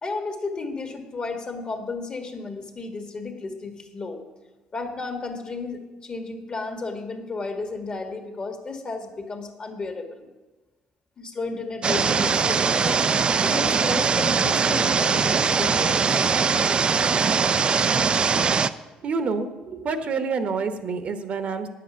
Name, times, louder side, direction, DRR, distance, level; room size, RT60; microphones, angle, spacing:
voice 1, 0.0-4.2 4.7-10.3 11.2-13.0 13.4-16.2, left 3 dB, 35° left, 4 dB, 1.7 m, -33 dB
sound 1, 11.8-18.7, right 5 dB, 35° right, 0.4 m, -21 dB
voice 2, 19.0-19.5 19.7-21.7, right 4 dB, 50° right, 8 dB, 1.0 m, -27 dB
9.6 x 7.6 x 7.0 m, 1.2 s
cardioid pair, 90°, 3 cm